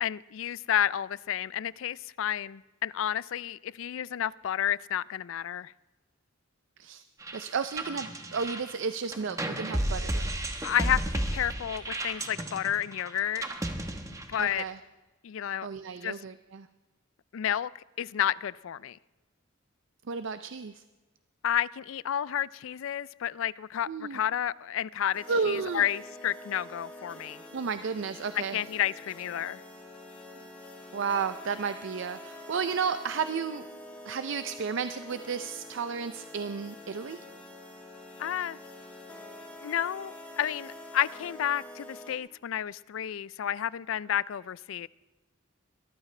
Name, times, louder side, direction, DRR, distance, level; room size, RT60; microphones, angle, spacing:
voice 1, 0.0-5.7 10.6-13.4 14.3-14.6 15.2-15.7 16.0-16.2 17.3-19.0 21.4-27.4 28.5-29.6 38.2-38.6 39.6-44.9, left 10 dB, 70° left, 21 dB, 0.3 m, -31 dB
sound 1, 7.2-14.7, right 1 dB, 15° right, 1.0 m, -33 dB
voice 2, 7.3-10.3 14.4-14.8 15.6-16.7 20.1-20.8 23.9-24.2 25.3-25.8 27.5-28.6 30.9-33.7 34.0-37.2, right 5 dB, 60° right, 11 dB, 0.5 m, -32 dB
sound 2, 25.1-42.2, left 1 dB, 5° left, 2.4 m, -46 dB
22.0 x 14.0 x 3.3 m, 1.2 s
head